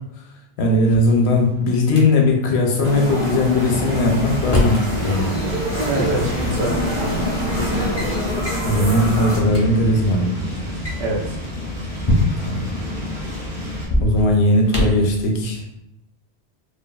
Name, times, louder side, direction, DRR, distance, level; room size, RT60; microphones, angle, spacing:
voice 1, 0.6-5.3 8.6-10.4 12.5-12.7 14.0-15.8, left 1 dB, 80° left, 1 dB, 0.9 m, -18 dB
Drawer open or close, 0.7-2.0 3.7-4.9 6.2-6.3 7.1-7.3 7.7-8.1 8.4-8.7 9.2-9.3 9.5-9.6 10.6-12.6 13.8-15.1, left 1 dB, 30° left, 0.5 m, -24 dB
sound 1, 2.8-9.4, equal, 50° right, 1.2 m, -25 dB
sound 2, 3.6-13.9, left 1 dB, 35° right, 0.9 m, -29 dB
voice 2, 5.8-7.2 7.6-7.9 11.0-11.4, right 1 dB, 75° right, -3 dB, 1.0 m, -25 dB
3.3 x 2.2 x 2.3 m, 0.83 s
omnidirectional pair, 1.1 m